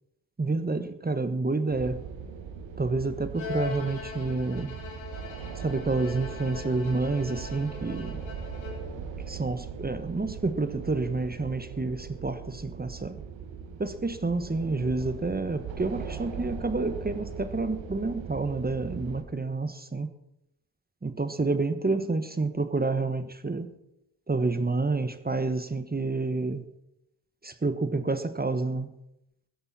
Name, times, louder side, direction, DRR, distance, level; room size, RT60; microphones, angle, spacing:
voice 1, 0.4-2.0 2.8-4.7 5.6-8.2 9.3-13.2 13.8-20.1 21.0-23.7 24.3-26.6 27.4-28.9, right 3 dB, 20° right, 11 dB, 1.3 m, -29 dB
sound 1, 1.7-19.2, right 6 dB, 65° right, 1.8 m, -40 dB
Bowed string instrument, 3.3-9.1, left 5 dB, 75° left, 3.9 m, -40 dB
15.5 x 13.0 x 4.3 m, 0.82 s
supercardioid pair, 55°, 48 cm